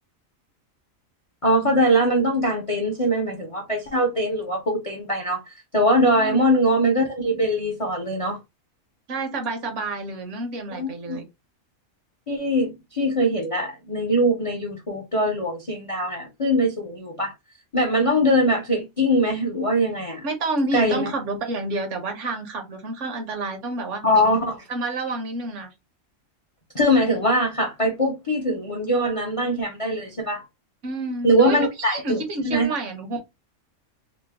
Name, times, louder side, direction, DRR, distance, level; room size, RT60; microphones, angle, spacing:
voice 1, 1.4-8.4 10.7-11.2 12.3-17.3 17.7-20.2 20.7-21.1 24.0-24.6 26.7-30.4 31.2-32.7, equal, 40° left, 0.5 m, -22 dB
voice 2, 9.1-11.3 20.2-24.0 24.7-25.7 30.8-33.2, right 2 dB, 65° right, 1.1 m, -29 dB
3.0 x 2.0 x 3.3 m
omnidirectional pair, 1.4 m